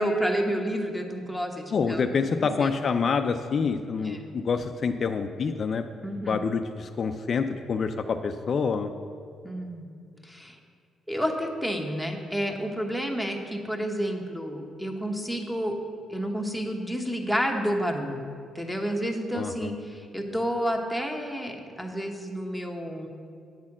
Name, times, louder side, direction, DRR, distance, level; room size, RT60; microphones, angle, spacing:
voice 1, 0.0-2.7 4.0-4.3 6.0-6.5 9.4-9.9 10.2-10.6 11.1-15.8 16.1-18.3 18.5-23.1, equal, ahead, 3 dB, 1.0 m, -30 dB
voice 2, 1.7-5.8 6.3-8.9 19.3-19.7, left 5 dB, 50° left, 7 dB, 0.4 m, -27 dB
8.6 x 4.2 x 7.3 m, 2.4 s
cardioid pair, 90°, 0 cm